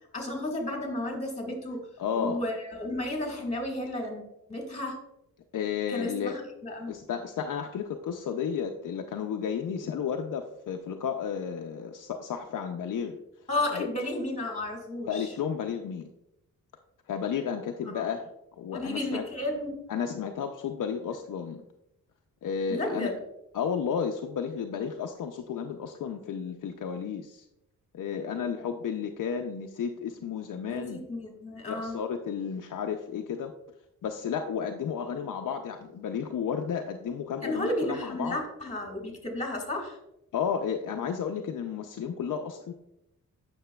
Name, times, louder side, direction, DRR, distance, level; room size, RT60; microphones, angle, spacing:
voice 1, 0.1-1.9 2.1-4.2 4.5-5.0 5.9-7.0 13.5-15.3 17.9-18.0 18.7-19.8 22.7-23.2 30.7-32.0 37.4-40.0, left 1 dB, 20° left, 1 dB, 1.7 m, -33 dB
voice 2, 2.0-2.4 5.5-6.4 6.9-13.2 13.7-13.9 15.1-16.1 17.1-18.3 18.6-19.2 19.9-21.6 22.4-23.1 23.5-27.5 27.9-31.1 31.7-33.5 34.0-38.4 40.3-42.7, left 7 dB, 65° left, 4 dB, 0.5 m, -32 dB
8.7 x 6.0 x 2.3 m, 0.86 s
wide cardioid pair, 105°, 35 cm